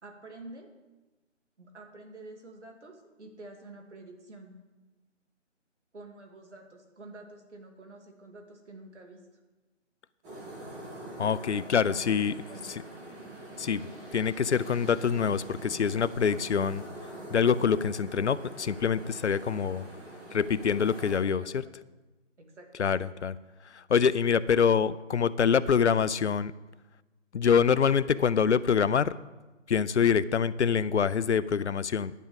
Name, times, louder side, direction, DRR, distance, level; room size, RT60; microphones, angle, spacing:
voice 1, 0.0-0.7 1.6-4.5 5.9-9.3 11.9-12.7 21.1-21.7 22.4-23.0, right 2 dB, 65° right, 3 dB, 2.4 m, -49 dB
sound 1, 10.2-21.2, right 1 dB, 10° right, 1.4 m, -44 dB
voice 2, 11.2-12.3 13.6-13.8 14.1-16.8 17.3-19.8 20.3-21.6 22.8-23.3 23.9-26.5 27.3-29.1 29.7-32.1, left 7 dB, 65° left, 18 dB, 0.5 m, -25 dB
10.5 x 5.4 x 7.0 m, 1.2 s
figure-of-eight pair, 160°, 37 cm